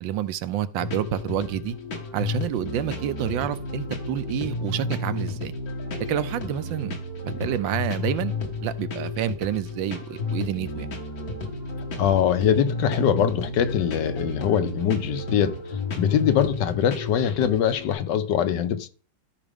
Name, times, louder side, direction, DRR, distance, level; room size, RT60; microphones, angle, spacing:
voice 1, 0.0-1.8 2.1-5.5 6.1-6.9 7.2-8.3 8.6-10.9, right 10 dB, 85° right, 1.4 m, -28 dB
sound 1, 0.8-17.9, left 3 dB, 55° left, 1.9 m, -32 dB
voice 2, 11.9-15.6 16.0-18.9, left 9 dB, 70° left, 1.3 m, -23 dB
13.5 x 5.0 x 3.5 m
omnidirectional pair, 2.0 m